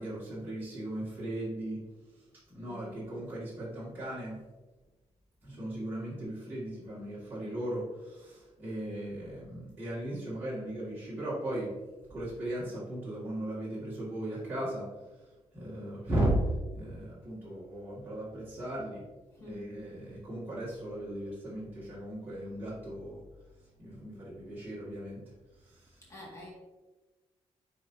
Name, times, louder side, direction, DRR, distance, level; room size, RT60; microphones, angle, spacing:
voice 1, 0.0-4.4 5.4-11.8 12.1-19.1 19.4-23.2 23.8-26.0, right 1 dB, 15° right, -10 dB, 2.0 m, -37 dB
voice 2, 2.6-3.1 18.2-18.5 19.3-19.8 22.1-22.2 24.0-24.1 26.1-26.5, left 1 dB, 25° left, -5 dB, 2.0 m, -48 dB
9.5 x 4.1 x 2.7 m, 1.2 s
wide cardioid pair, 175°, 12 cm